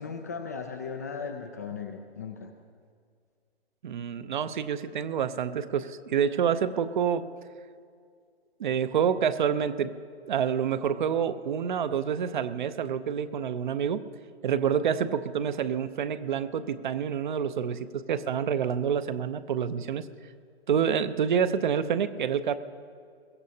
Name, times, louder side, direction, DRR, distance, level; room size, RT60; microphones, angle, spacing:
voice 1, 0.0-2.5, left 5 dB, 15° left, 5 dB, 0.3 m, -37 dB
voice 2, 3.8-7.2 8.6-10.0 10.2-14.1 14.4-20.0 20.7-22.6, right 7 dB, 50° right, 13 dB, 0.7 m, -27 dB
22.0 x 16.0 x 2.8 m, 2.1 s
figure-of-eight pair, 130°, 31 cm